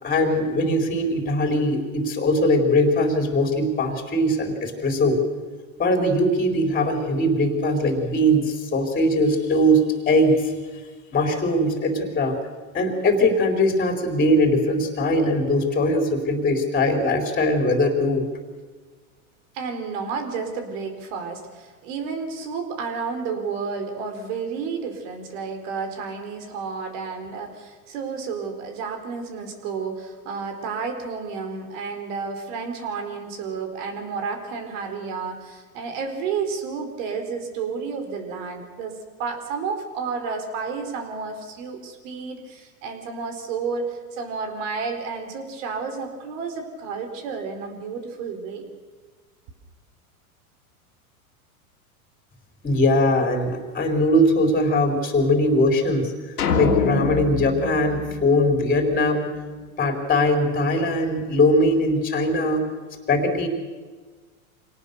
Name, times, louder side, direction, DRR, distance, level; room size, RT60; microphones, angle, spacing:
voice 1, 0.0-5.2 5.8-10.5 11.1-12.4 12.7-18.3 52.6-56.1 56.6-59.3 59.8-62.6 63.1-63.5, left 1 dB, 20° left, 5 dB, 3.9 m, -21 dB
voice 2, 19.5-38.9 39.2-48.7 59.9-60.0, right 5 dB, 60° right, 6 dB, 4.7 m, -31 dB
sound 1, 56.4-58.9, left 5 dB, 90° left, 3.0 m, -26 dB
25.5 x 18.5 x 6.8 m, 1.4 s
hypercardioid pair, 110°, 43 cm